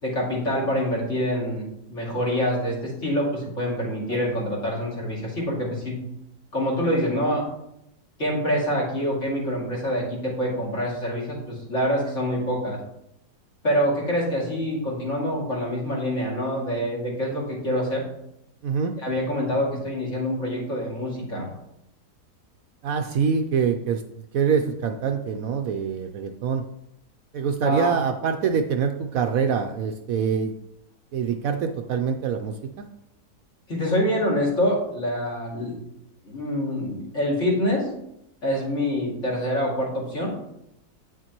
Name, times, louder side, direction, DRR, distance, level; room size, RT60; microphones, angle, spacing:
voice 1, 0.0-6.0 6.5-7.4 8.2-12.8 13.6-18.1 19.0-21.5 27.6-27.9 33.7-35.8 36.2-37.9 38.4-40.3, equal, 50° left, -4 dB, 2.8 m, -26 dB
voice 2, 18.6-18.9 22.8-24.0 24.3-26.6 27.3-30.5 31.1-32.9, right 6 dB, 70° right, 6 dB, 0.9 m, -25 dB
9.1 x 6.7 x 3.0 m, 0.81 s
omnidirectional pair, 1.7 m